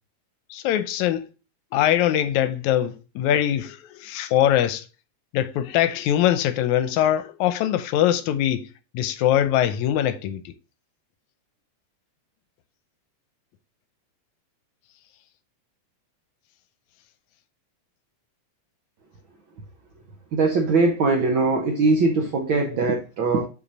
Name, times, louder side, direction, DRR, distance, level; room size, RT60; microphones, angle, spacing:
voice 1, 0.5-1.3 1.7-4.8 5.3-8.7 8.9-10.5, left 11 dB, 85° left, 2.0 m, -22 dB
voice 2, 20.3-23.5, right 3 dB, 65° right, 1.2 m, -21 dB
5.8 x 4.9 x 4.1 m
omnidirectional pair, 3.3 m